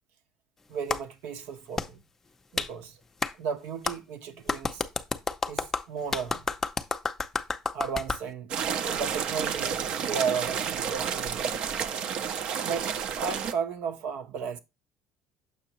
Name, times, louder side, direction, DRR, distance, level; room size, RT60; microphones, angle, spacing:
voice 1, 0.7-2.0 2.5-3.0 3.4-4.8 5.5-6.4 7.7-8.5 8.9-11.8 12.6-14.6, right 6 dB, 75° right, 1.2 m, -34 dB
Clapping, 0.9-1.0 1.8-1.9 2.6-2.7 3.2-3.3 3.9-4.0 4.5-8.2, left 4 dB, 15° left, 0.6 m, -30 dB
sound 1, 8.5-13.5, right 7 dB, 50° right, 0.7 m, -30 dB
7.2 x 5.8 x 3.1 m
cardioid pair, 145°, 2 cm